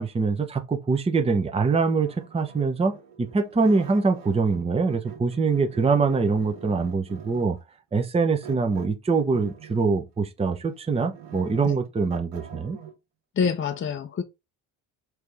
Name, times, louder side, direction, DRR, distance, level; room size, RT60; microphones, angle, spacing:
voice 1, 0.0-7.6 7.9-12.8, right 4 dB, 15° right, 0.7 m, -24 dB
sound 1, 1.7-4.6 4.9-7.6 8.4-10.0 10.4-12.9, right 8 dB, 85° right, 1.4 m, -45 dB
voice 2, 13.4-14.2, left 6 dB, 30° left, 0.6 m, -26 dB
4.6 x 2.6 x 3.4 m
hypercardioid pair, 70°, 44 cm